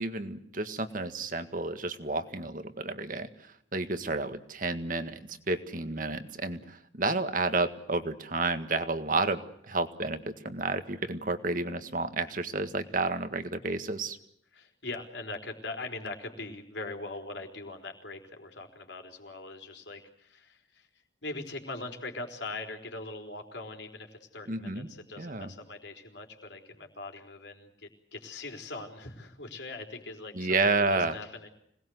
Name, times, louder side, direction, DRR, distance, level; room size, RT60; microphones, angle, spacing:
voice 1, 0.0-14.2 24.5-24.9 25.2-25.5 30.3-31.2, right 3 dB, 45° right, 9 dB, 1.8 m, -31 dB
voice 2, 14.5-20.9 21.2-30.5 30.9-31.5, left 2 dB, 70° left, 4 dB, 4.2 m, -41 dB
26.0 x 19.5 x 7.9 m, 0.71 s
head